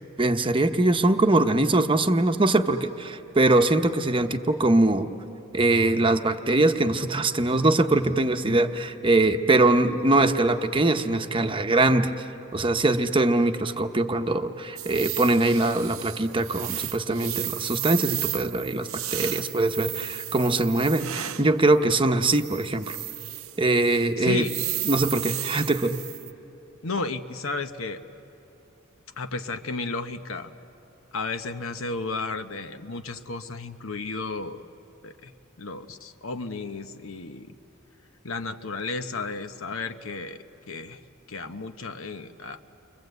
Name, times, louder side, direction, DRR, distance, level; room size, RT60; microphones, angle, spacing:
voice 1, 0.2-5.1 5.5-12.1 12.5-23.0 23.6-24.4 24.9-26.0, right 2 dB, 25° right, 7 dB, 0.9 m, -22 dB
sound 1, 14.8-21.5 22.3-23.6 23.9-24.0 24.4-26.3, right 14 dB, 80° right, 0.7 m, -33 dB
voice 2, 24.2-24.5 26.8-28.0 29.2-30.5 31.1-34.7 35.0-35.3 35.6-37.5 38.2-41.0 41.3-42.7, left 3 dB, 70° left, 9 dB, 1.0 m, -33 dB
30.0 x 24.0 x 8.1 m, 3.0 s
head